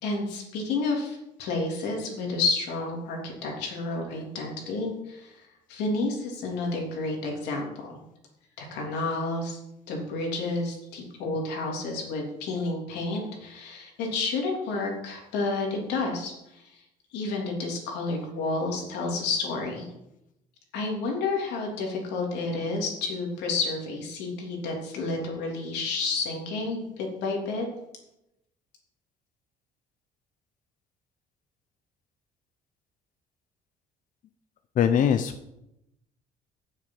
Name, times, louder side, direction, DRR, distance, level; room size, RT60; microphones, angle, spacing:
voice 1, 0.0-5.4 5.7-8.0 8.6-9.6 9.9-16.8 17.1-19.9 20.7-27.7, left 3 dB, 90° left, 0 dB, 3.1 m, -30 dB
voice 2, 34.8-35.5, left 8 dB, 50° left, 8 dB, 0.7 m, -22 dB
7.5 x 6.6 x 7.7 m, 0.86 s
cardioid pair, 110°, 17 cm